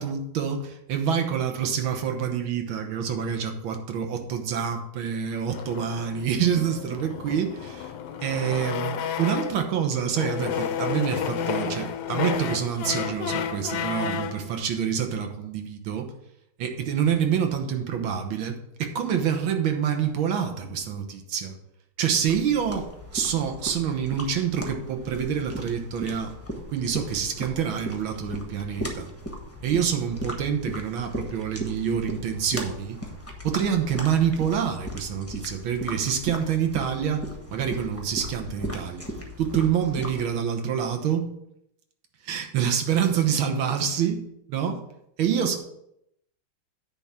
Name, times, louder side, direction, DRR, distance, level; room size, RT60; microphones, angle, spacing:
voice 1, 0.0-7.9 8.2-16.1 16.6-21.6 22.0-26.3 26.7-29.1 29.6-33.0 33.4-39.1 39.4-41.3 42.2-44.8 45.2-45.6, right 8 dB, 70° right, 5 dB, 1.8 m, -27 dB
sound 1, 5.5-9.7 10.1-14.4, left 7 dB, 70° left, 1.0 m, -31 dB
sound 2, 22.3-40.3, equal, 10° left, 0.9 m, -37 dB
9.8 x 3.7 x 7.0 m, 0.79 s
omnidirectional pair, 2.4 m